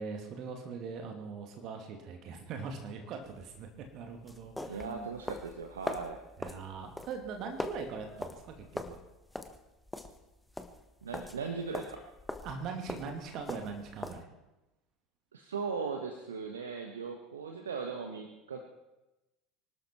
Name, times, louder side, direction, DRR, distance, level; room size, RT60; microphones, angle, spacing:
voice 1, 0.0-3.7 3.9-5.1 6.4-9.0 12.4-14.3, right 5 dB, 45° right, 4 dB, 2.6 m, -41 dB
sound 1, 3.2-14.2, left 1 dB, 5° left, 1.4 m, -42 dB
voice 2, 4.7-6.2 11.0-12.0 15.3-18.6, right 5 dB, 75° right, 4 dB, 1.4 m, -38 dB
25.0 x 12.5 x 4.5 m, 1.0 s
figure-of-eight pair, 70°, 0 cm